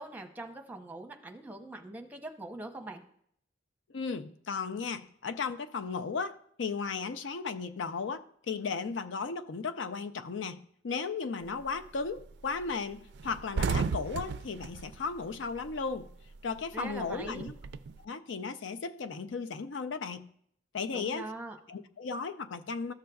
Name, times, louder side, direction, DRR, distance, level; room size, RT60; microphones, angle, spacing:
voice 1, 0.0-3.0 16.7-17.5 20.9-21.6, right 2 dB, 10° right, 0.7 m, -42 dB
voice 2, 3.9-16.1 16.4-17.5 18.0-20.3 20.7-21.3 21.7-22.9, left 5 dB, 85° left, 0.5 m, -35 dB
sound 1, 11.4-11.8 12.2-12.3 12.6-12.7 13.0-16.0 16.3-18.0, right 5 dB, 65° right, 0.3 m, -34 dB
13.5 x 6.4 x 2.3 m
head